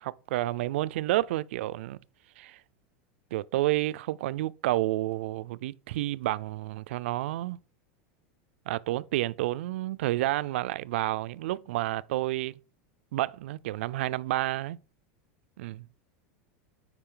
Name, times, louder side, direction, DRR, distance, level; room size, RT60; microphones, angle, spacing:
voice 1, 0.0-2.0 2.4-2.6 3.3-7.6 8.7-12.5 13.1-14.8 15.6-15.9, right 16 dB, 70° right, 0.3 m, -30 dB
8.8 x 5.0 x 3.8 m
supercardioid pair, 175°, 7 cm